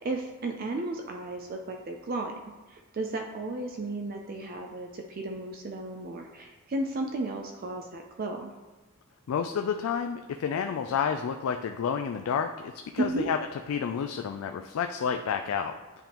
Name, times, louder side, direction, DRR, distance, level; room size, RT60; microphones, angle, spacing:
voice 1, 0.0-2.3 2.7-8.5 13.0-13.3, right 2 dB, 45° right, 3 dB, 0.4 m, -34 dB
voice 2, 9.3-13.4 13.7-15.7, left 7 dB, 75° left, 6 dB, 0.3 m, -30 dB
9.7 x 3.5 x 2.9 m, 1.2 s
head